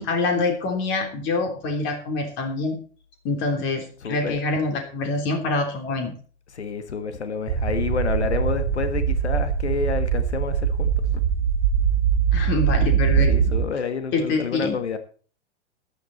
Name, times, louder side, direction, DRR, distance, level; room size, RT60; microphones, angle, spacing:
voice 1, 0.0-2.8 3.2-6.1 12.3-13.3 14.1-14.8, left 3 dB, 35° left, 5 dB, 3.4 m, -25 dB
voice 2, 4.0-4.4 6.5-11.2 13.2-15.0, left 5 dB, 75° left, 10 dB, 1.6 m, -29 dB
sound 1, 7.5-13.6, right 7 dB, 45° right, 2.0 m, -22 dB
14.0 x 10.5 x 4.2 m, 0.41 s
figure-of-eight pair, 100°, 34 cm